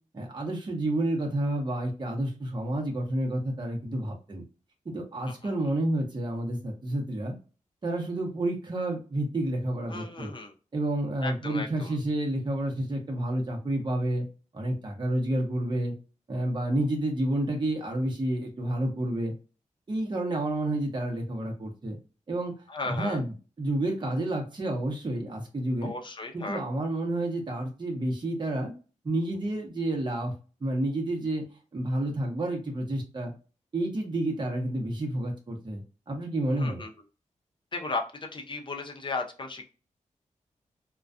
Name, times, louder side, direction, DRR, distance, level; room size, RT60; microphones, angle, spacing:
voice 1, 0.1-4.4 4.8-7.3 7.8-10.3 10.7-14.3 14.5-15.9 16.3-19.3 19.9-22.0 22.3-22.6 22.8-25.9 26.3-28.7 29.0-30.3 30.6-31.5 31.7-33.3 33.7-35.8 36.1-36.8, right 1 dB, 35° right, 0 dB, 0.8 m, -30 dB
voice 2, 9.9-10.5 11.2-11.9 22.7-23.2 25.8-26.6 36.6-36.9 37.7-38.0 38.3-39.7, left 3 dB, 40° left, 3 dB, 0.6 m, -35 dB
2.3 x 2.2 x 2.4 m, 0.35 s
cardioid pair, 70°, 13 cm